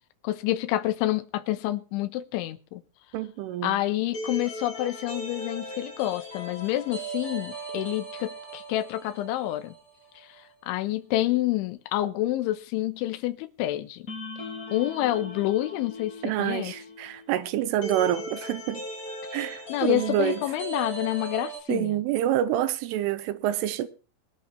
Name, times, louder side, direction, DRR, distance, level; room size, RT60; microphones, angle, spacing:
voice 1, 0.2-2.8 3.6-9.7 10.6-14.1 14.7-16.7 19.7-22.0, left 15 dB, 75° left, 3.2 m, -28 dB
voice 2, 3.1-3.8 16.2-18.8 19.3-20.4 21.7-23.9, right 12 dB, 85° right, 3.4 m, -27 dB
sound 1, 3.4-10.1 10.3-10.4 14.1-21.6, right 1 dB, 15° left, 5.8 m, -39 dB
23.5 x 10.5 x 3.1 m
omnidirectional pair, 5.7 m